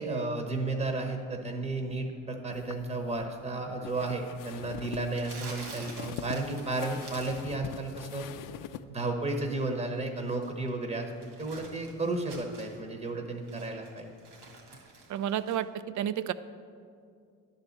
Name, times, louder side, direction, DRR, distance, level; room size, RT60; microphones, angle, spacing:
voice 1, 0.0-8.3 8.9-11.1 11.4-14.1, right 2 dB, 15° right, 4 dB, 0.9 m, -33 dB
sound 1, 2.5-8.8, left 10 dB, 55° left, 0.5 m, -43 dB
Crumpling crinkling, 5.1-7.5 7.8-8.2 9.9-12.8 13.3-15.6, right 3 dB, 80° right, 1.9 m, -49 dB
voice 2, 15.1-15.7 15.9-16.3, right 10 dB, 50° right, 14 dB, 0.5 m, -30 dB
10.5 x 4.0 x 7.2 m, 2.3 s
supercardioid pair, 80°, 38 cm